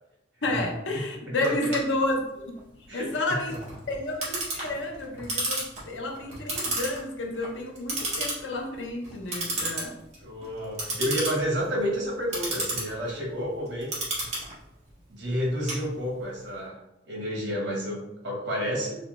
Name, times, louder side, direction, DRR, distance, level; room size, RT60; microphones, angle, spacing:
voice 1, 0.4-3.5 3.9-10.0, left 2 dB, 85° left, 2 dB, 0.7 m, -31 dB
Clock, 1.4-16.4, right 2 dB, 40° right, 1.4 m, -34 dB
voice 2, 1.4-1.7 2.9-3.2 10.2-13.9 15.1-16.8 17.1-19.0, equal, 80° right, -2 dB, 1.3 m, -30 dB
3.2 x 3.2 x 3.1 m, 0.91 s
head